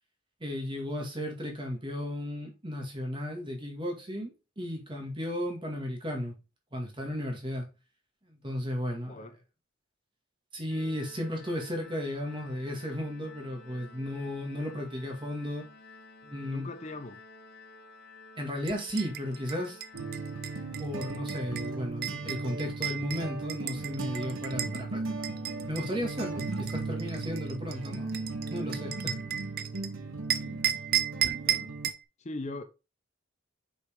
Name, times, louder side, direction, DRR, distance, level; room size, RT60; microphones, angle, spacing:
voice 1, 0.4-6.4 6.7-7.7 8.2-9.2 10.5-15.7 16.2-16.7 18.4-19.8 20.8-25.3 25.7-28.2 28.5-29.2, equal, 25° right, 2.0 m, -35 dB
Organ, 10.7-21.4, left 3 dB, 55° left, 1.3 m, -52 dB
voice 2, 16.4-17.2 30.4-30.6 31.5-31.7 32.2-32.6, left 2 dB, 35° left, 0.6 m, -40 dB
sound 1, 18.6-24.8 25.2-29.9 30.3-32.0, right 11 dB, 45° right, 0.6 m, -34 dB
sound 2, 19.9-31.9, right 3 dB, 80° right, 1.2 m, -37 dB
6.2 x 5.4 x 3.6 m
head